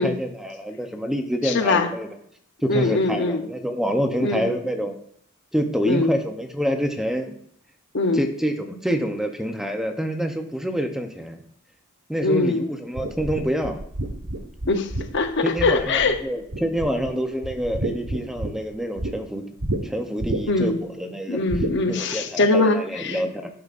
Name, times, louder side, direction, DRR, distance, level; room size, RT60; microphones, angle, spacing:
voice 1, 0.0-2.2 2.6-4.9 5.5-7.3 8.1-11.4 12.1-13.8 15.4-19.5 19.8-21.4 21.9-23.5, equal, ahead, 4 dB, 0.7 m, -27 dB
voice 2, 1.4-1.9 2.7-3.5 4.2-4.4 5.8-6.1 7.9-8.2 12.2-12.6 14.7-16.2 20.5-20.8 21.3-23.2, left 3 dB, 55° left, 7 dB, 0.8 m, -22 dB
sound 1, 13.0-16.2 16.5-17.1 17.4-19.1 19.6-19.8 20.2-20.7 21.5-21.8, right 1 dB, 85° right, 1.3 m, -29 dB
9.9 x 6.7 x 2.5 m, 0.67 s
head